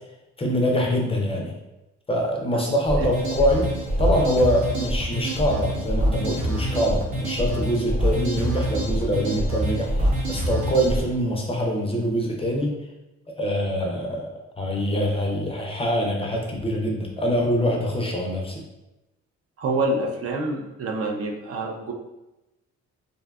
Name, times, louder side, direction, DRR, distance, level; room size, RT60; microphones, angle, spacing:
voice 1, 0.4-1.5 2.1-3.7 4.0-12.8 13.4-14.3 14.6-18.6, equal, 20° left, 0 dB, 0.4 m, -24 dB
voice 2, 2.5-3.1 19.6-21.9, right 2 dB, 50° right, 2 dB, 0.4 m, -27 dB
sound 1, 2.9-11.0, right 1 dB, 70° right, 0.8 m, -25 dB
2.6 x 2.2 x 2.2 m, 0.97 s
cardioid pair, 90°, 30 cm